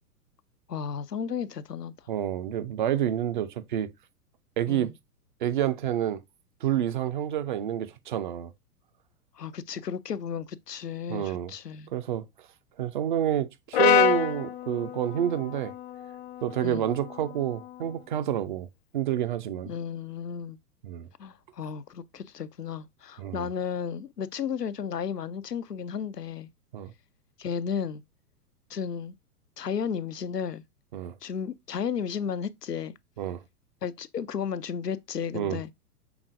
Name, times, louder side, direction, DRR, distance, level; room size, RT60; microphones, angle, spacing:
voice 1, 0.7-1.9 4.7-4.9 9.4-11.9 16.6-16.9 19.6-20.6 21.2-26.5 27.4-28.0 28.7-29.1 29.6-30.6 31.2-32.9 33.8-35.7, left 7 dB, 85° left, 0.6 m, -33 dB
voice 2, 2.1-3.9 4.6-4.9 5.4-6.2 6.6-8.5 11.1-11.5 11.9-12.5 12.8-15.7 16.4-18.7 18.9-19.7 20.8-21.1 23.2-23.5 26.7-26.9 30.9-31.2 33.2-33.4 35.3-35.6, right 11 dB, 35° right, 0.5 m, -28 dB
Brass instrument, 13.7-18.0, left 10 dB, 45° left, 0.6 m, -28 dB
5.9 x 3.6 x 2.5 m
figure-of-eight pair, 105°, 46 cm